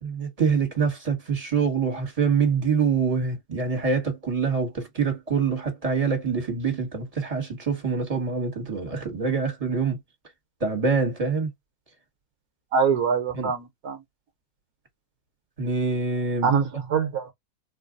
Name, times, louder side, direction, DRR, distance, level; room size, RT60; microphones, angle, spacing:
voice 1, 0.0-10.0 10.6-11.5 13.3-13.5 15.6-16.5, right 5 dB, 25° right, 1.4 m, -25 dB
voice 2, 12.7-14.0 16.4-17.3, right 6 dB, 70° right, 1.3 m, -24 dB
4.2 x 2.5 x 2.4 m
omnidirectional pair, 1.7 m